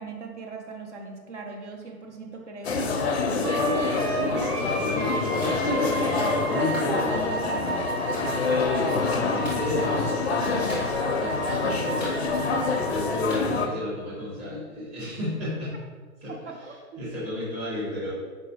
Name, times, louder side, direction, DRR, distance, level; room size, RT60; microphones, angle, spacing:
voice 1, 0.0-3.4 10.4-11.0 16.4-16.8, right 2 dB, 50° right, 2 dB, 0.8 m, -40 dB
sound 1, 2.6-13.7, left 4 dB, 50° left, 0.5 m, -26 dB
Wind instrument woodwind instrument, 3.4-13.3, right 2 dB, 90° right, 1.1 m, -33 dB
voice 2, 4.0-7.6 8.7-10.1 11.2-15.7 16.2-16.3 17.0-18.1, left 1 dB, 20° right, -9 dB, 1.4 m, -32 dB
Clapping, 5.4-5.6 6.7-6.9 8.1-8.3 9.4-9.7 10.7-11.2 12.0-12.6 13.3-13.5, equal, 5° right, 1.0 m, -39 dB
4.6 x 2.9 x 2.8 m, 1.5 s
hypercardioid pair, 145°, 44 cm